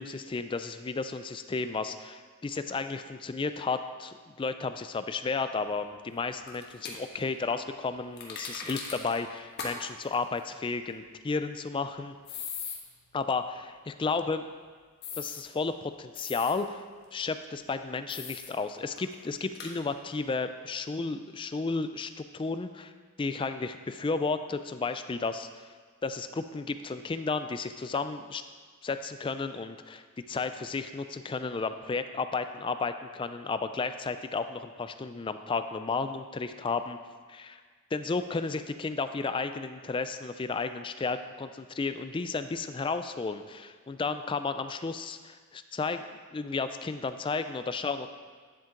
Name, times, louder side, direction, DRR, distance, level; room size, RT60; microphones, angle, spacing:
voice 1, 0.0-12.1 13.1-14.4 15.2-16.8 17.1-22.9 23.2-25.5 26.0-28.4 28.8-37.0 37.3-37.6 37.9-46.1 46.3-48.1, left 4 dB, 25° left, 10 dB, 0.3 m, -33 dB
sound 1, 6.5-7.0 8.2-9.2 9.6-9.7 10.0-10.1 12.2-12.8 15.0-15.4 16.1-16.5 18.1-18.5 19.0-19.1 19.5-19.7, left 5 dB, 50° left, 1.3 m, -39 dB
10.0 x 7.3 x 3.8 m, 1.6 s
head